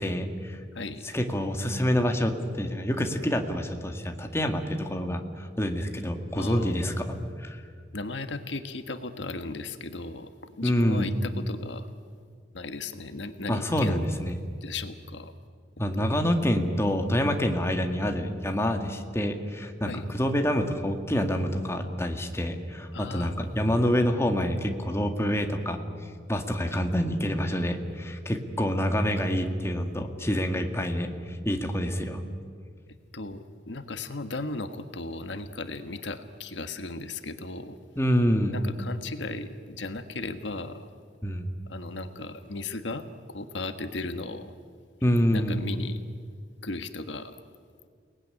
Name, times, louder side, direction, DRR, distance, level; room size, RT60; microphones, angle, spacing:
voice 1, 0.0-0.6 1.1-7.6 10.6-11.2 13.5-14.4 15.8-25.8 26.3-32.2 38.0-38.7 41.2-41.5 45.0-45.6, equal, 15° left, 4 dB, 2.0 m, -27 dB
voice 2, 0.7-1.0 6.3-6.8 7.9-11.9 12.5-14.0 14.6-15.3 15.9-16.1 19.9-20.1 22.9-23.5 32.9-37.8 38.5-40.9 41.7-44.5 45.3-46.0 46.6-47.4, left 3 dB, 75° left, 9 dB, 1.5 m, -36 dB
29.5 x 19.5 x 9.9 m, 2.1 s
head